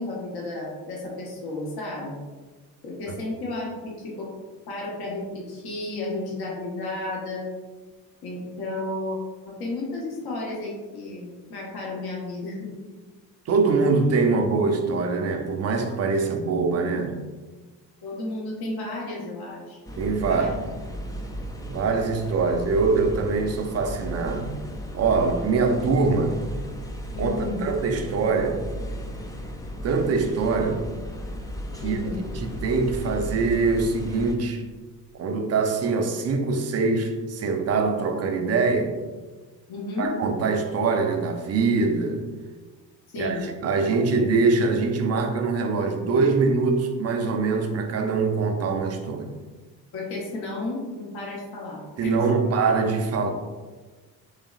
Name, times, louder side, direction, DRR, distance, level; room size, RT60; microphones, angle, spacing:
voice 1, 0.0-2.2 2.8-4.3 4.7-7.5 8.2-9.2 9.5-12.7 18.0-19.8 20.2-20.5 27.1-27.6 31.8-32.2 39.7-40.1 43.1-43.5 49.9-52.5, left 2 dB, 50° left, -3 dB, 1.4 m, -32 dB
voice 2, 13.5-17.1 20.0-20.5 21.7-24.6 24.9-26.4 27.2-28.6 29.8-30.9 31.8-32.0 32.3-34.6 35.1-39.0 40.0-42.2 43.2-49.3 52.0-53.3, right 4 dB, 35° right, 5 dB, 0.7 m, -23 dB
sound 1, 19.8-34.4, equal, 10° left, 0.5 m, -35 dB
6.4 x 3.1 x 2.4 m, 1.3 s
figure-of-eight pair, 50°, 47 cm